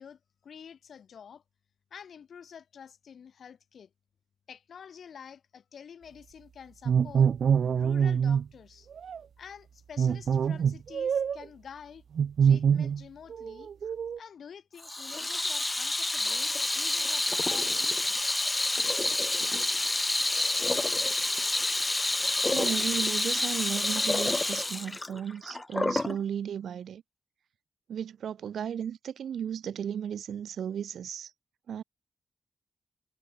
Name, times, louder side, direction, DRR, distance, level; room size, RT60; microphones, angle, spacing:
voice 1, 0.0-1.4 1.9-3.9 4.5-7.3 7.7-8.9 9.4-12.0 12.4-13.7 14.2-18.0, left 7 dB, 60° left, 7.5 m, -48 dB
sound 1, 6.8-8.4 9.0-9.2 10.0-11.4 12.2-13.0 13.3-14.2, right 7 dB, 60° right, 0.4 m, -25 dB
Water tap faucet / Sink (filling or washing), 14.8-26.2, left 2 dB, 15° left, 0.9 m, -28 dB
voice 2, 22.5-27.0 27.9-31.3 31.7-31.8, right 8 dB, 80° right, 3.7 m, -35 dB
wide cardioid pair, 165°, 0 cm